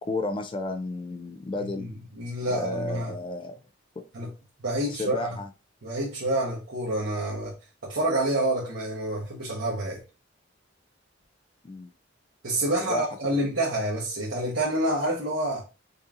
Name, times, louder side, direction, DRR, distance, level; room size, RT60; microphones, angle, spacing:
voice 1, 0.0-1.9 2.5-3.6 4.0-4.1 4.9-5.5 11.6-11.9 12.8-13.5, left 2 dB, 25° left, 0.4 m, -33 dB
voice 2, 1.6-1.9 2.2-3.1 4.1-4.3 4.6-5.3 5.8-7.5 7.8-10.0 12.4-15.6, right 1 dB, 80° right, 1.2 m, -28 dB
5.3 x 2.7 x 2.5 m
head